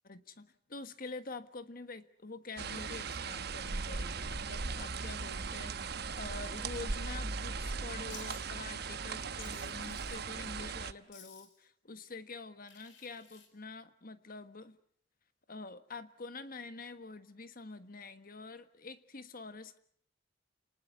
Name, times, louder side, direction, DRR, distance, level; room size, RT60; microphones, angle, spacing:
voice 1, 0.0-14.8 15.5-19.8, left 3 dB, 50° left, 11 dB, 1.5 m, -46 dB
sound 1, 2.6-10.9, right 4 dB, 60° right, 1.0 m, -38 dB
Wild animals, 8.1-8.4 9.4-10.3 11.1-11.6 12.7-13.5, left 7 dB, 90° left, 4.4 m, -54 dB
29.5 x 19.5 x 8.2 m, 0.64 s
head